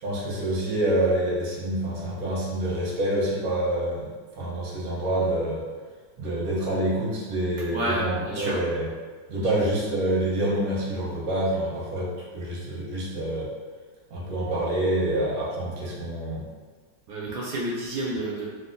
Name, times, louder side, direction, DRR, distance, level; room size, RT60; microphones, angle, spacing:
voice 1, 0.0-4.1 4.4-5.6 6.2-8.9 9.3-13.5 14.1-16.4, right 1 dB, 60° right, -5 dB, 1.0 m, -27 dB
voice 2, 7.7-8.6 9.3-9.6 17.1-18.5, right 1 dB, 75° right, -5 dB, 1.2 m, -30 dB
3.5 x 2.5 x 2.5 m, 1.5 s
omnidirectional pair, 2.3 m